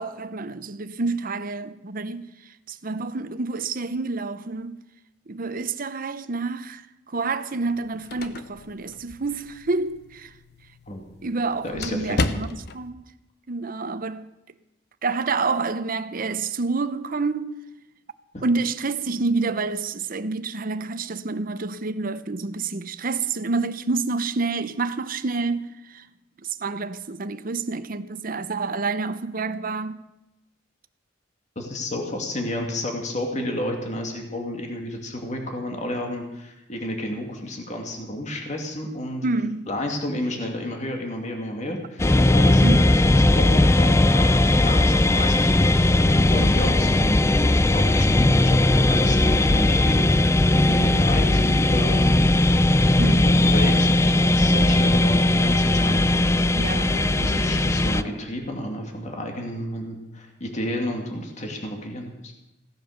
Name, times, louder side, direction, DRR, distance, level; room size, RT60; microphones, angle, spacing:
voice 1, 0.0-4.8 5.3-10.3 11.2-12.5 12.7-13.0 13.5-14.3 15.0-17.6 18.4-26.1 26.4-30.0 33.3-33.5 39.2-39.7 42.6-42.9 53.0-53.4 56.5-57.7, right 3 dB, 50° right, 0.8 m, -28 dB
sound 1, 7.7-12.9, left 2 dB, 60° left, 1.0 m, -33 dB
voice 2, 11.6-12.4 18.3-18.4 31.6-39.2 39.7-47.3 47.7-48.6 48.9-52.3 53.2-56.0 56.9-62.3, left 1 dB, 40° left, 2.4 m, -31 dB
sound 2, 42.0-58.0, left 1 dB, 15° left, 0.4 m, -18 dB
17.0 x 10.5 x 6.6 m
head